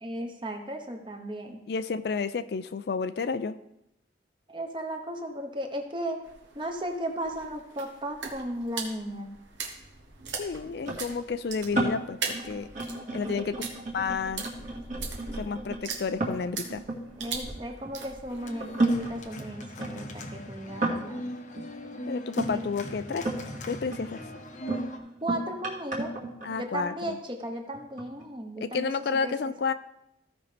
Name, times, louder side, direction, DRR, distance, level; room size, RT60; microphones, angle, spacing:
voice 1, 0.0-1.6 4.5-6.2 6.5-9.3 13.2-13.5 17.2-21.2 22.5-22.7 25.2-26.1 26.6-28.9 29.2-29.3, right 1 dB, 25° right, 3 dB, 1.0 m, -35 dB
voice 2, 1.7-3.6 10.4-12.7 13.1-13.7 13.9-14.5 15.3-16.8 22.1-23.3 23.6-24.2 26.4-27.2 28.6-29.7, left 5 dB, 60° left, 12 dB, 0.4 m, -31 dB
sound 1, 6.2-19.3, right 4 dB, 85° right, 1.5 m, -40 dB
sound 2, 10.9-18.1 18.6-22.5 23.1-23.6 23.9-27.1 27.7-28.2, right 2 dB, 45° right, 1.7 m, -33 dB
Organ, 18.4-25.0, equal, 40° left, 0.8 m, -40 dB
15.0 x 5.3 x 3.4 m, 0.81 s
head